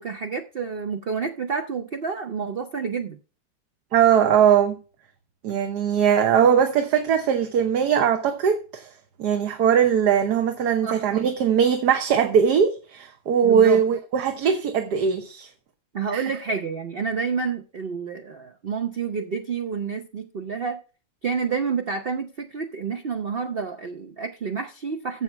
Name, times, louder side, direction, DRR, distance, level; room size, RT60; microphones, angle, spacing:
voice 1, 0.0-3.2 10.8-11.0 13.4-13.8 15.9-20.8 21.2-25.2, right 5 dB, 50° right, 0.7 m, -29 dB
voice 2, 3.9-4.8 5.4-8.9 9.2-15.5 16.1-16.3, right 8 dB, 65° right, 1.4 m, -20 dB
7.6 x 7.1 x 5.7 m
omnidirectional pair, 1.9 m